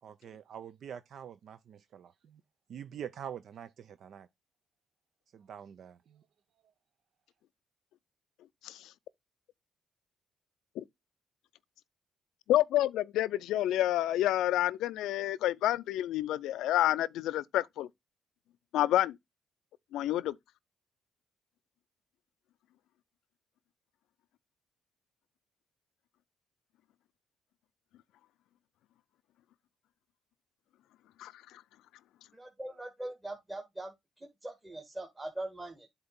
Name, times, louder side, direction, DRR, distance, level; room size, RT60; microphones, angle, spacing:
voice 1, 0.0-2.4 2.7-4.3 5.3-6.2, right 8 dB, 65° right, 0.4 m, -45 dB
voice 2, 12.5-17.9 18.7-19.1 19.9-20.3 31.2-31.3, left 13 dB, 85° left, 0.4 m, -28 dB
voice 3, 32.3-33.9 34.4-35.9, right 1 dB, 15° right, 1.4 m, -41 dB
8.0 x 2.9 x 5.1 m
cardioid pair, 90°, 0 cm